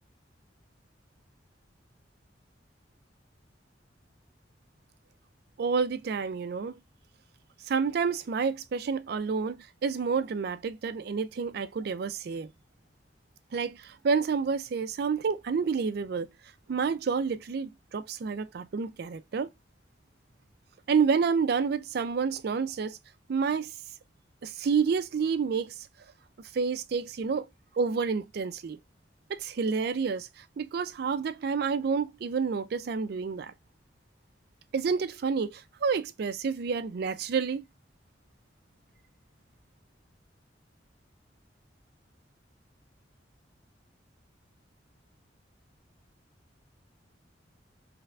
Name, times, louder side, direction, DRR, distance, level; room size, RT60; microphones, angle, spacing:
voice 1, 5.6-6.7 7.7-12.5 13.5-16.3 16.7-19.5 20.9-23.0 23.3-23.7 24.4-25.7 26.5-27.5 27.8-28.8 29.3-33.5 34.7-37.6, right 5 dB, 60° right, 0.4 m, -29 dB
3.3 x 2.4 x 3.2 m
head